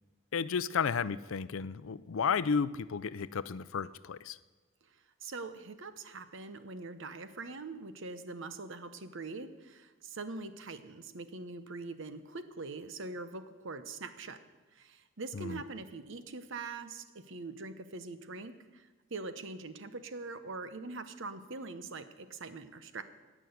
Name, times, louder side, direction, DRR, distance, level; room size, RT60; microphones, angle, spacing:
voice 1, 0.3-4.4 15.3-15.6, left 6 dB, 75° left, 16 dB, 0.5 m, -33 dB
voice 2, 5.2-14.4 14.8-18.8 19.1-23.0, right 3 dB, 65° right, 10 dB, 1.0 m, -43 dB
16.5 x 6.2 x 9.3 m, 1.3 s
head